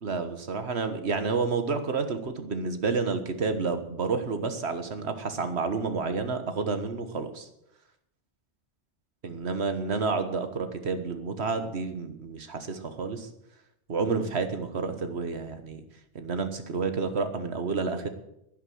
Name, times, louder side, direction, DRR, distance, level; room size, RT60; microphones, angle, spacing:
voice 1, 0.0-7.5 9.2-13.3 13.9-15.8 16.1-18.1, right 4 dB, 65° right, 8 dB, 1.6 m, -30 dB
11.5 x 10.5 x 7.8 m, 0.82 s
omnidirectional pair, 1.2 m